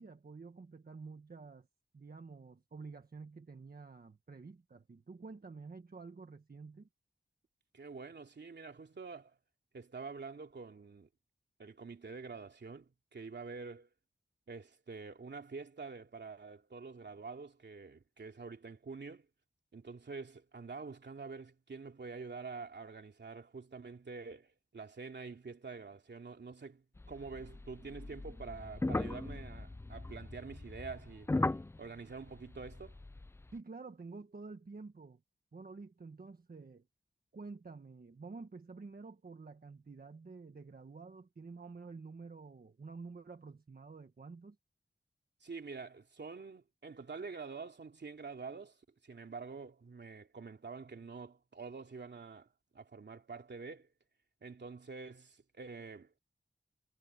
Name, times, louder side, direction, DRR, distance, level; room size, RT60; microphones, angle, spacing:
voice 1, 0.0-1.7 1.9-6.9 33.5-35.2 35.5-36.9 37.3-44.6, right 4 dB, 55° right, 1.5 m, -49 dB
voice 2, 7.7-9.4 9.7-11.1 11.6-13.9 14.5-19.3 19.7-31.3 31.8-33.0 45.4-53.9 54.4-56.2, right 4 dB, 70° right, 2.9 m, -47 dB
sound 1, 27.0-33.5, left 2 dB, 15° left, 0.3 m, -39 dB
wide cardioid pair, 100°, 18 cm